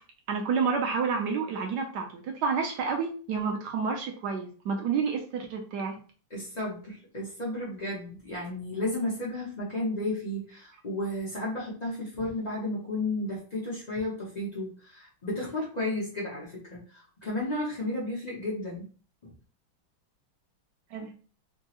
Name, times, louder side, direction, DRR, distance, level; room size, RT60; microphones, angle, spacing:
voice 1, 0.3-5.9 20.9-21.1, right 5 dB, 70° right, 3 dB, 1.0 m, -29 dB
voice 2, 6.3-18.9 19.2-19.3, left 1 dB, 80° left, -5 dB, 0.3 m, -33 dB
4.4 x 2.0 x 2.8 m, 0.39 s
omnidirectional pair, 2.2 m